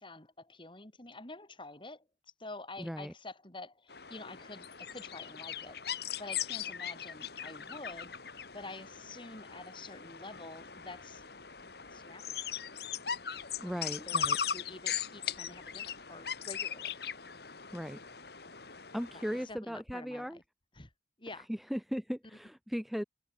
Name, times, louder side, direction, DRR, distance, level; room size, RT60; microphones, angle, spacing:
voice 1, 0.0-2.0 2.4-11.2 11.6-12.5 13.6-13.7 14.1-14.2 14.5-17.0 19.1-20.4 20.8-20.9 21.2-21.5, left 2 dB, 30° left, 3.8 m, -48 dB
voice 2, 2.8-3.1 13.6-14.4 17.7-18.0 18.9-20.4 21.3-23.0, equal, ahead, 1.2 m, -37 dB
sound 1, 3.9-19.5, left 7 dB, 60° left, 2.7 m, -39 dB
open air
head